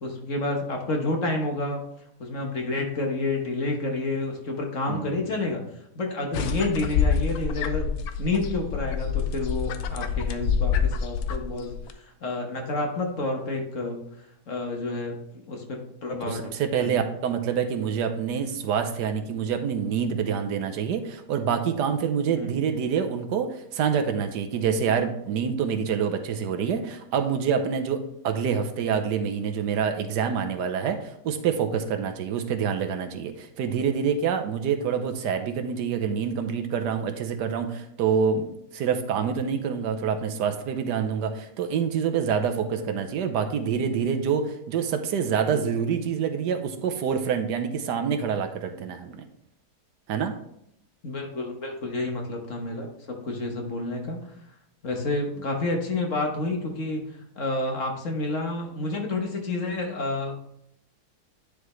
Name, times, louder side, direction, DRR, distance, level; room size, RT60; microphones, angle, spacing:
voice 1, 0.0-1.8 2.2-5.6 5.9-7.9 8.2-14.0 14.5-15.2 15.5-16.5 16.8-17.0 22.4-22.5 51.0-54.2 54.8-57.0 57.3-60.4, left 2 dB, 50° left, 2 dB, 1.4 m, -29 dB
voice 2, 4.9-5.3 16.3-49.2 50.1-50.3, right 7 dB, 80° right, 7 dB, 1.4 m, -26 dB
sound 1, 6.3-11.9, left 6 dB, 70° left, 1.1 m, -27 dB
10.0 x 4.8 x 3.2 m, 0.75 s
omnidirectional pair, 1.8 m